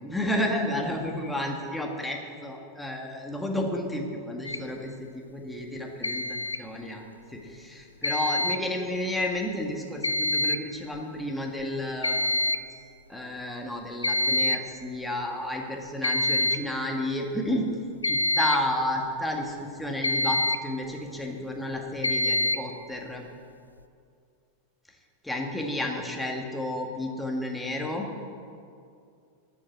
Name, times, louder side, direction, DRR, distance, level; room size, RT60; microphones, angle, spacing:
voice 1, 0.0-12.4 13.1-17.7 18.1-23.2 25.2-28.1, left 1 dB, 5° left, 0 dB, 1.9 m, -31 dB
sound 1, 4.5-4.6 6.0-6.6 8.0-8.6 10.0-10.6 10.9-11.0 11.6-11.7 12.0-12.6 14.0-14.7 16.0-16.7 18.0-18.7 20.0-20.7 22.0-22.7, left 1 dB, 80° left, 0.3 m, -26 dB
12.5 x 7.2 x 8.6 m, 2.4 s
figure-of-eight pair, 90°, 0 cm